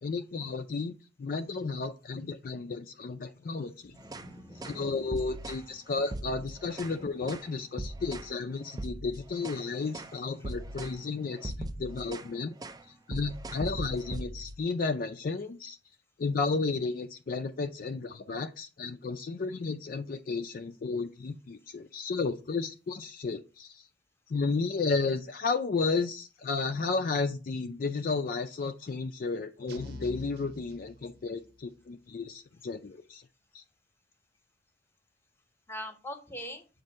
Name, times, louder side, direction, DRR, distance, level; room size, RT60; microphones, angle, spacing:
voice 1, 0.0-0.9 1.2-3.9 4.6-12.5 13.1-15.8 16.2-23.9 24.3-33.2 33.5-33.6, left 4 dB, 45° left, 6 dB, 0.4 m, -33 dB
voice 2, 3.8-5.1 7.0-7.3 9.5-9.8 10.4-10.5 35.7-36.7, equal, 15° left, 6 dB, 0.9 m, -44 dB
sound 1, 4.0-4.3 4.6-4.8 5.1-5.7 6.0-7.0 7.3-7.5 7.8-8.3 8.7-9.7 9.9-10.2 10.4-11.0 11.3-12.3 12.6-12.8 13.1-14.6, right 1 dB, 20° right, 0.4 m, -39 dB
sound 2, 29.7-31.6, equal, 60° right, 0.9 m, -46 dB
7.4 x 2.6 x 5.3 m, 0.33 s
head